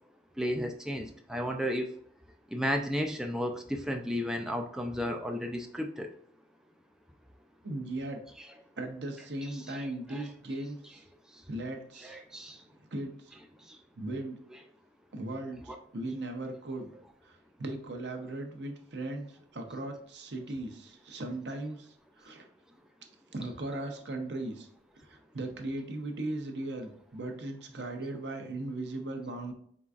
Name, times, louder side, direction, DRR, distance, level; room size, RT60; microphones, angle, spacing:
voice 1, 0.4-1.9 2.5-6.1 8.4-8.5 9.4-10.3 12.0-12.6 14.5-14.6 15.7-15.8, equal, 5° right, 3 dB, 0.3 m, -34 dB
voice 2, 7.6-8.2 8.8-11.0 11.5-12.2 12.9-13.2 14.0-14.4 15.1-16.9 17.3-21.9 22.2-22.5 23.3-24.7 25.1-29.5, right 2 dB, 75° right, 4 dB, 0.8 m, -38 dB
4.3 x 3.8 x 2.4 m, 0.63 s
head